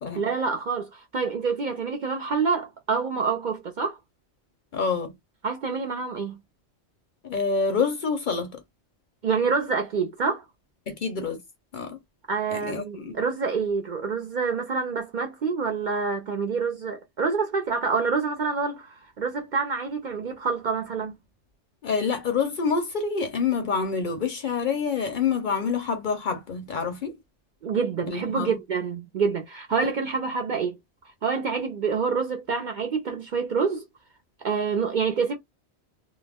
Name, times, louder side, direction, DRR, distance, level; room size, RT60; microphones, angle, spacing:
voice 1, 0.1-4.0 5.4-6.4 9.2-10.4 12.3-21.2 27.6-30.8 31.2-33.8 34.4-35.4, right 5 dB, 55° right, 0.5 m, -27 dB
voice 2, 4.7-5.1 7.2-8.6 10.9-11.4 11.7-12.0 12.5-13.1 21.8-27.2 28.1-28.5, left 5 dB, 55° left, 0.7 m, -27 dB
2.2 x 2.1 x 3.3 m
omnidirectional pair, 1.2 m